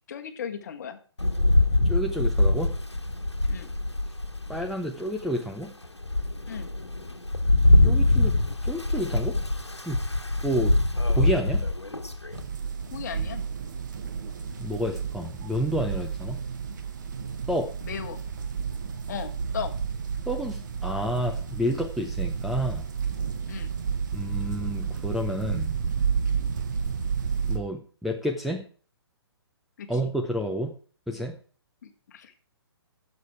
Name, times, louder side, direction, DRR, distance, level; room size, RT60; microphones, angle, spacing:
voice 1, 0.1-1.0 3.5-3.7 6.5-6.7 12.9-13.4 17.8-18.2 19.1-19.7 23.5-23.7 29.8-30.1 31.8-32.3, left 7 dB, 40° left, 8 dB, 1.4 m, -36 dB
Rain, 1.2-4.7 5.3-5.4 5.8-12.4, left 2 dB, 85° left, 1.4 m, -23 dB
voice 2, 1.8-2.8 4.5-5.7 7.8-8.4 8.6-9.4 9.9-10.1 10.4-10.8 11.1-11.6 14.6-16.4 17.5-17.7 20.3-22.8 24.1-25.8 27.5-28.6 29.9-30.8 31.1-31.4, equal, ahead, 0 dB, 0.5 m, -30 dB
sound 1, 12.3-27.6, right 6 dB, 45° right, 1.3 m, -31 dB
11.0 x 6.9 x 4.7 m, 0.42 s
figure-of-eight pair, 130°, 14 cm